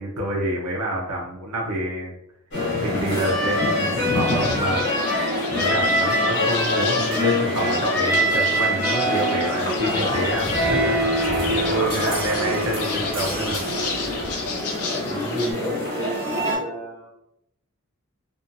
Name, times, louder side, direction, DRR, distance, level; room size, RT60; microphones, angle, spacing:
voice 1, 0.0-2.2 2.8-4.8 5.5-11.0 11.4-13.6, right 1 dB, 75° right, -2 dB, 0.6 m, -27 dB
sound 1, 2.5-16.6, equal, 55° left, 1.1 m, -24 dB
sound 2, 4.2-15.5, left 5 dB, 80° left, 0.5 m, -33 dB
sound 3, 10.2-15.2, right 1 dB, 25° right, 1.3 m, -34 dB
voice 2, 15.0-17.1, right 2 dB, 5° left, -11 dB, 0.7 m, -34 dB
2.6 x 2.2 x 2.5 m, 0.82 s
head